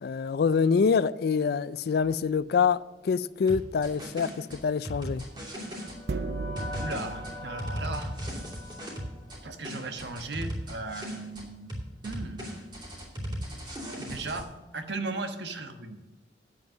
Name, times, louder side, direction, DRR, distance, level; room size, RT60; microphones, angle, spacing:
voice 1, 0.0-5.2, left 5 dB, 60° left, 0.3 m, -26 dB
sound 1, 2.0-2.4 6.1-8.4, right 3 dB, 65° right, 0.7 m, -37 dB
sound 2, 3.5-6.0 6.6-9.4 9.6-11.4 11.7-14.4, equal, 25° right, 2.7 m, -37 dB
sound 3, 5.0-10.2, left 3 dB, 15° left, 2.4 m, -44 dB
voice 2, 6.8-8.4 9.4-11.7 12.0-12.7 14.0-16.0, right 3 dB, 80° right, 1.2 m, -37 dB
9.0 x 7.9 x 6.4 m
head